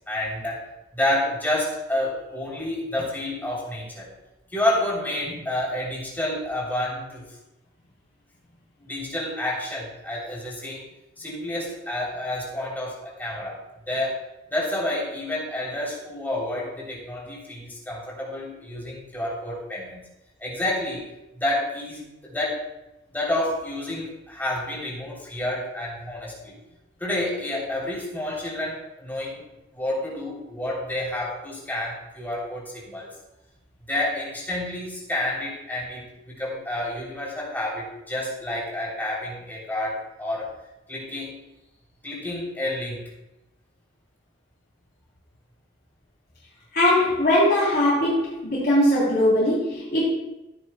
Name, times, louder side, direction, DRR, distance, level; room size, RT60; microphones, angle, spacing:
voice 1, 0.1-0.6 0.9-4.1 4.5-7.2 8.8-10.8 11.2-13.6 13.9-14.2 14.5-20.0 20.4-21.1 21.3-22.6 23.1-26.5 27.0-29.4 29.7-33.1 33.9-40.5 40.9-41.4 42.0-43.0, left 1 dB, 10° left, -4 dB, 3.2 m, -29 dB
voice 2, 46.7-50.0, left 1 dB, 55° left, -7 dB, 3.4 m, -20 dB
15.0 x 9.1 x 2.2 m, 0.95 s
head